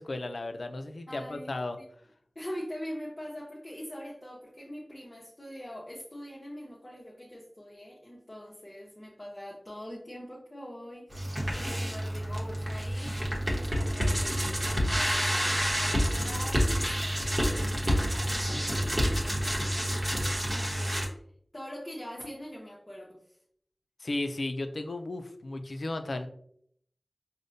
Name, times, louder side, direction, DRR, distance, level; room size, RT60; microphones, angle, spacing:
voice 1, 0.0-1.8 24.0-26.3, left 2 dB, 80° left, 7 dB, 0.4 m, -34 dB
voice 2, 1.1-1.8 2.3-18.9 19.2-20.0 20.5-21.0 21.5-23.2, equal, 30° left, -4 dB, 0.7 m, -43 dB
sound 1, 11.1-21.1, equal, 30° right, 1.0 m, -28 dB
5.0 x 2.1 x 2.6 m, 0.66 s
wide cardioid pair, 45°, 0 cm